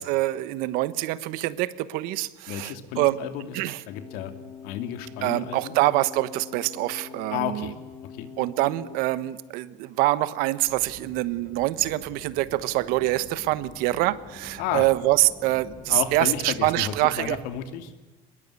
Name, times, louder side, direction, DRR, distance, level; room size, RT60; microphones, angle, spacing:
voice 1, 0.0-3.2 3.5-3.8 5.2-7.7 8.4-17.4, right 17 dB, 75° right, 15 dB, 1.2 m, -25 dB
voice 2, 2.5-4.3 4.6-5.7 7.3-7.7 8.2-8.3 14.6-14.9 15.9-17.9, left 10 dB, 80° left, 8 dB, 2.7 m, -32 dB
sound 1, 3.9-9.0, left 7 dB, 45° left, 3.3 m, -44 dB
sound 2, 10.7-17.6, left 3 dB, 25° left, 3.4 m, -47 dB
24.0 x 21.0 x 8.5 m, 1.2 s
cardioid pair, 145°, 15 cm